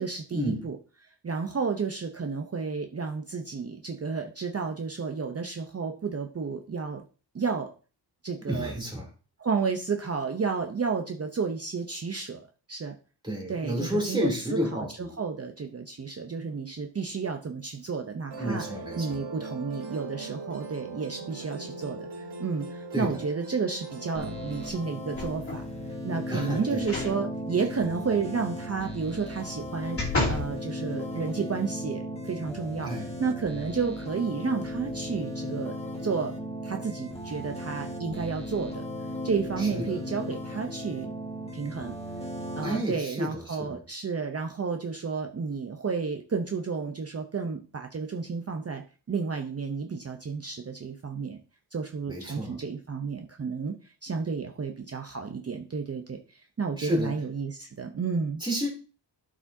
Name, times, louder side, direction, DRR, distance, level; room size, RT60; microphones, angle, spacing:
voice 1, 0.0-7.0 7.3-7.7 8.2-8.7 9.4-12.9 13.5-18.6 19.0-25.7 26.0-30.0 30.3-35.7 36.0-36.3 36.6-38.8 39.2-41.1 41.5-41.9 42.6-51.4 51.7-58.4, right 5 dB, 35° right, 4 dB, 0.7 m, -32 dB
voice 2, 8.5-9.1 13.2-15.1 18.4-19.2 22.9-23.2 26.3-26.8 32.8-33.1 39.6-40.0 42.6-43.8 52.1-52.6 56.8-57.1 58.4-58.7, equal, 10° right, -2 dB, 2.9 m, -31 dB
Musical instrument, 18.3-24.7, right 3 dB, 65° right, 1.3 m, -40 dB
sound 1, 24.1-42.8, equal, 15° left, 1.6 m, -36 dB
sound 2, 25.1-25.7 26.8-27.2 27.6-27.7 29.3-30.5 31.1-31.2, left 2 dB, 30° left, 2.6 m, -31 dB
12.0 x 5.0 x 2.7 m, 0.36 s
wide cardioid pair, 125°, 43 cm